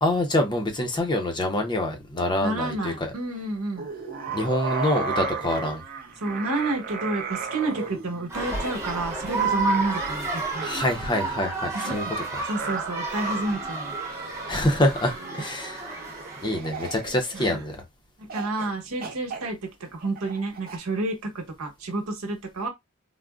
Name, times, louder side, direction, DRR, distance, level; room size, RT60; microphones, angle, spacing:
voice 1, 0.0-2.9 4.3-5.8 10.5-12.0 14.5-15.9 16.4-17.8, left 1 dB, 20° left, 0.6 m, -25 dB
voice 2, 2.4-3.9 6.2-10.7 11.7-12.0 12.5-13.9 17.3-17.6 18.2-22.7, right 2 dB, 85° right, 1.0 m, -30 dB
sound 1, 3.8-17.8 18.3-18.7 19.0-20.8, right 5 dB, 45° right, 0.6 m, -36 dB
sound 2, 8.3-16.6, right 3 dB, 10° right, 0.8 m, -31 dB
3.6 x 2.0 x 2.3 m
head